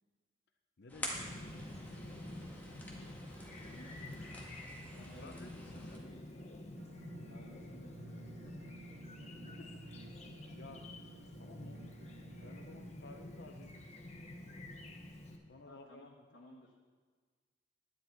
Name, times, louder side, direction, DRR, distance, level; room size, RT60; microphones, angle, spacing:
voice 1, 0.8-1.6 4.9-5.7 9.5-9.8 10.5-10.9 11.4-12.0 12.3-13.8 15.5-16.2, left 2 dB, 65° left, 5 dB, 0.7 m, -54 dB
sound 1, 0.9-6.0, left 1 dB, 10° left, 1.8 m, -47 dB
Chirp tweet, 1.1-15.4, left 1 dB, 40° left, 1.1 m, -49 dB
voice 2, 3.6-4.0 4.9-6.6 7.3-8.6 15.7-16.8, left 1 dB, 85° left, -4 dB, 1.3 m, -58 dB
sound 2, 6.8-12.9, right 2 dB, 65° right, 0.5 m, -54 dB
11.5 x 9.8 x 4.5 m, 1.5 s
head